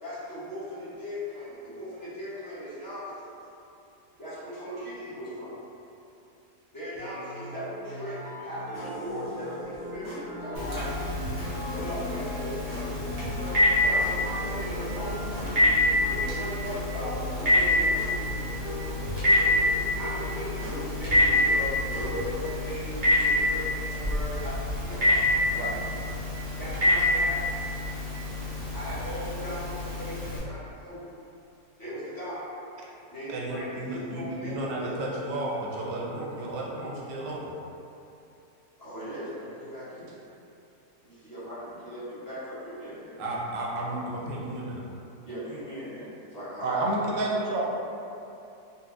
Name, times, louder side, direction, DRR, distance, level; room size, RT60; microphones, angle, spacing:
voice 1, 0.0-3.3 4.2-5.6 6.7-11.1 11.7-13.2 13.8-15.3 16.1-18.0 20.0-25.6 26.6-27.7 28.7-31.1 31.8-32.7 33.1-35.0 38.8-40.3 41.0-43.2 45.2-46.9, equal, 25° left, -13 dB, 0.5 m, -38 dB
sound 1, 7.0-16.1, left 1 dB, 85° left, 1.4 m, -41 dB
sound 2, 8.7-22.6, equal, 45° left, 1.4 m, -39 dB
Telephone, 10.5-30.4, left 1 dB, 50° right, 0.5 m, -27 dB
voice 2, 33.3-37.5 43.2-44.8, right 1 dB, 85° right, -4 dB, 1.2 m, -33 dB
voice 3, 46.6-47.6, right 2 dB, 70° right, -4 dB, 0.9 m, -28 dB
4.1 x 2.1 x 2.5 m, 2.8 s
omnidirectional pair, 1.8 m